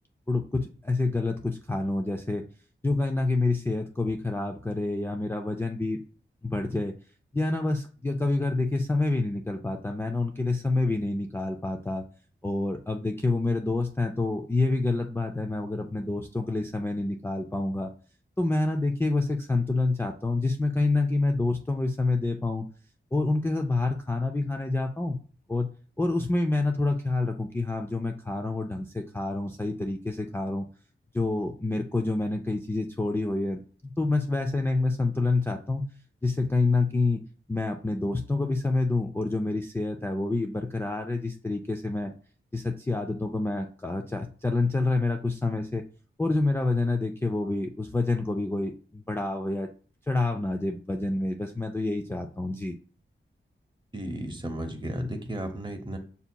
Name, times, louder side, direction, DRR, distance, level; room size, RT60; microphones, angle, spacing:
voice 1, 0.3-2.4 2.8-6.0 6.4-6.9 7.3-12.0 12.4-17.9 18.4-22.7 23.1-25.2 25.5-25.7 26.0-30.6 31.1-35.8 36.2-37.2 37.5-42.1 42.5-45.8 46.2-49.7 50.1-52.8, left 2 dB, 10° left, 2 dB, 0.3 m, -27 dB
voice 2, 53.9-56.0, right 1 dB, 20° right, 5 dB, 0.8 m, -34 dB
6.8 x 2.7 x 2.2 m, 0.41 s
wide cardioid pair, 95°, 21 cm